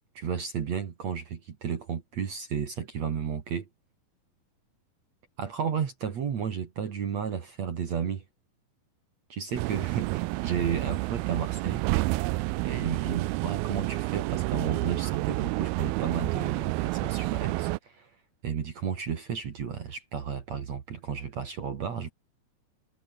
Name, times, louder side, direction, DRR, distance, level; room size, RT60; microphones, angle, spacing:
voice 1, 0.1-3.7 5.4-8.2 9.3-11.9 12.6-18.1 18.4-22.1, right 7 dB, 50° right, 2.9 m, -33 dB
sound 1, 9.6-17.8, right 21 dB, 85° right, 2.5 m, -29 dB
omnidirectional pair, 4.5 m